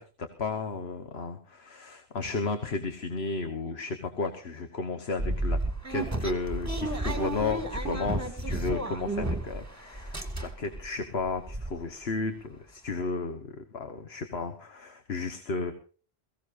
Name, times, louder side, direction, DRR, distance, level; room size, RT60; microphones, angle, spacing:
voice 1, 0.0-5.6 5.9-15.7, left 4 dB, 75° left, 7 dB, 1.6 m, -33 dB
sound 1, 5.2-9.7 9.9-10.8 11.2-11.3 11.5-11.7, right 1 dB, 15° right, 2.2 m, -31 dB
22.5 x 16.0 x 2.6 m, 0.40 s
omnidirectional pair, 1.1 m